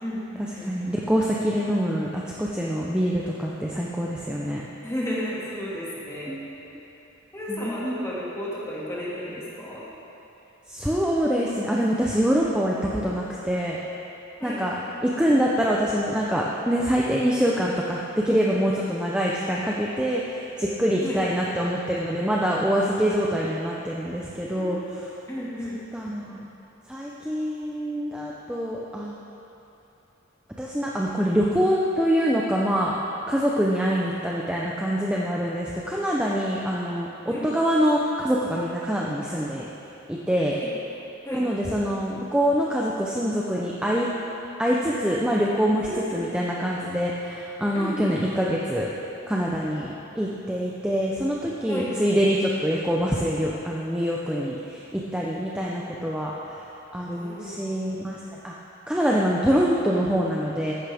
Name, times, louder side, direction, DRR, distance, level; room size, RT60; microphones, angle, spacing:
voice 1, 0.0-0.9 4.8-6.4 7.3-9.9 14.4-14.6 21.0-21.2 24.6-24.8 25.3-25.8 37.3-37.5 40.5-40.7 41.2-41.4 45.9-46.3 47.7-48.2 51.7-51.9 57.1-57.7, equal, 15° left, -7 dB, 2.1 m, -33 dB
voice 2, 0.7-4.6 6.3-6.5 7.5-8.1 10.7-13.8 14.4-14.7 15.0-24.8 25.9-26.4 26.9-29.1 30.6-32.9 33.3-39.6 40.1-40.6 41.3-44.1 44.6-48.9 49.3-49.9 50.2-56.6 56.9-58.2 58.4-58.5 58.9-60.7, equal, 5° right, -4 dB, 0.6 m, -25 dB
14.5 x 10.5 x 3.5 m, 3.0 s
head